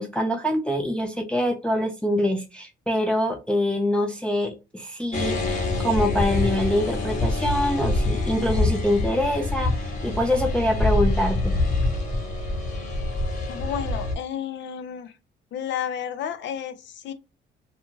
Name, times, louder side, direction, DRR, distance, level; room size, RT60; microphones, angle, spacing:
voice 1, 0.0-11.5, left 1 dB, 5° left, 0.4 m, -25 dB
sound 1, 5.1-14.2, left 2 dB, 40° left, 1.0 m, -25 dB
voice 2, 13.5-15.1 15.5-17.1, left 9 dB, 70° left, 0.5 m, -31 dB
2.5 x 2.3 x 3.0 m
cardioid pair, 90°, 20 cm